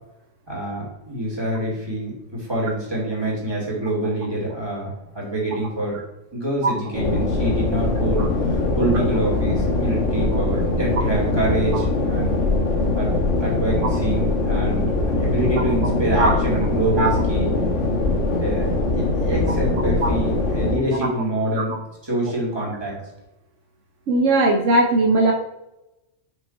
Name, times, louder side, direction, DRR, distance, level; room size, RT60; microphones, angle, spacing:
voice 1, 0.5-6.0 6.3-12.3 12.9-13.1 13.4-17.5 18.4-21.7 22.0-23.0, right 1 dB, 20° right, -5 dB, 2.7 m, -26 dB
sound 1, 6.9-20.8, left 2 dB, 75° left, 1.5 m, -22 dB
voice 2, 24.1-25.3, right 2 dB, 75° right, 1 dB, 1.1 m, -18 dB
6.2 x 5.1 x 4.2 m, 0.95 s
omnidirectional pair, 1.3 m